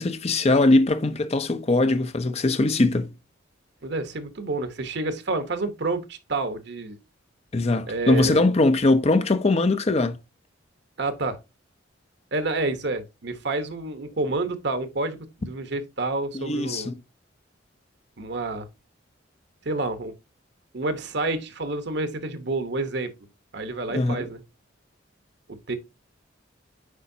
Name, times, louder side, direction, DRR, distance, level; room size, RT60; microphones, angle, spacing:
voice 1, 0.0-3.1 7.5-10.2 16.3-17.0 23.9-24.3, left 2 dB, 35° left, 0.6 m, -21 dB
voice 2, 3.8-6.9 7.9-8.4 11.0-11.4 12.3-16.9 18.2-18.6 19.6-20.1 20.7-23.1 23.5-24.4 25.7-25.8, right 2 dB, 60° right, 1.0 m, -29 dB
8.2 x 5.1 x 2.7 m
head